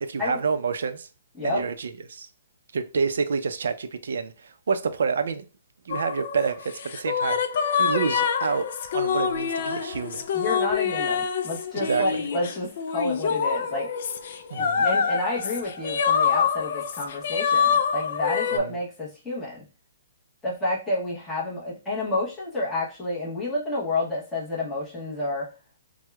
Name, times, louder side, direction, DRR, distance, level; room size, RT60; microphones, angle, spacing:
voice 1, 0.0-1.1 1.4-2.3 2.7-5.5 5.9-7.4 7.8-8.7 8.9-10.3 11.7-12.2 14.5-14.9 18.5-18.7, right 5 dB, 75° right, 0.4 m, -28 dB
sound 1, 5.9-18.6, left 6 dB, 50° left, 0.3 m, -26 dB
voice 2, 10.3-13.9 14.6-19.6 20.4-25.5, left 2 dB, 5° left, 0.8 m, -29 dB
4.4 x 2.0 x 2.2 m
hypercardioid pair, 165°, 0 cm